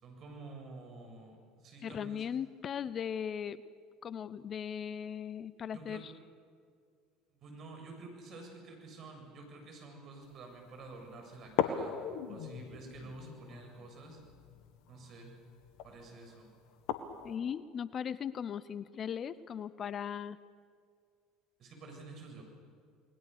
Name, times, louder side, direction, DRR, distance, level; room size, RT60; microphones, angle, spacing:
voice 1, 0.0-2.2 5.7-6.0 7.3-12.0 12.3-14.2 14.9-15.4 15.8-16.5 21.6-22.4, right 3 dB, 45° right, 3 dB, 7.5 m, -49 dB
voice 2, 1.8-3.6 4.0-6.1 17.2-20.4, left 8 dB, 40° left, 18 dB, 0.7 m, -38 dB
sound 1, 10.3-10.4 10.8-10.9 11.4-17.4, left 9 dB, 65° left, 1.7 m, -39 dB
29.0 x 20.5 x 6.9 m, 2.1 s
hypercardioid pair, 70°, 0 cm